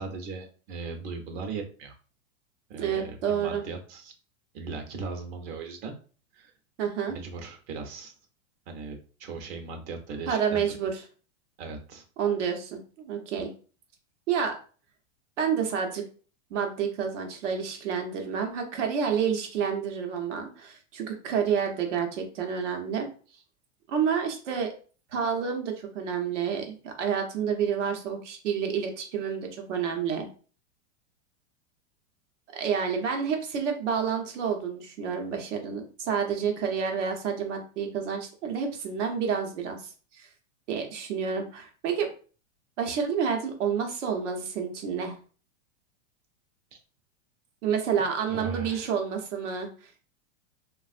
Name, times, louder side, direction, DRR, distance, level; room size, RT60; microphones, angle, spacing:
voice 1, 0.0-1.9 2.7-4.1 4.5-5.9 6.4-6.5 7.1-8.1 8.7-10.6 11.6-12.0 46.7-46.8 48.0-48.9, right 4 dB, 50° right, 4 dB, 0.8 m, -38 dB
voice 2, 2.8-3.6 6.8-7.2 10.3-11.0 12.2-13.5 14.3-14.6 15.4-16.0 16.5-23.1 23.9-24.7 25.1-30.3 32.5-40.3 40.7-42.1 42.8-45.2 47.6-50.0, right 7 dB, 80° right, 3 dB, 1.0 m, -29 dB
3.3 x 2.4 x 2.4 m, 0.38 s
hypercardioid pair, 130°, 36 cm